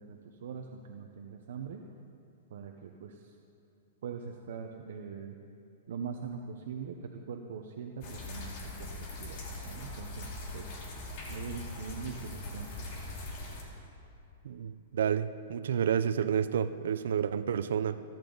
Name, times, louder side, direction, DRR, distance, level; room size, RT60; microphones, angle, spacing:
voice 1, 0.0-1.8 2.5-3.3 4.0-5.4 5.9-8.9 9.2-10.3 10.5-10.7 11.3-12.9, right 6 dB, 65° right, 3 dB, 1.0 m, -42 dB
sound 1, 8.0-13.6, left 2 dB, 35° left, 2.6 m, -41 dB
voice 2, 14.4-18.0, right 8 dB, 80° right, 12 dB, 0.6 m, -30 dB
28.5 x 10.5 x 4.0 m, 2.8 s
supercardioid pair, 170°, 0 cm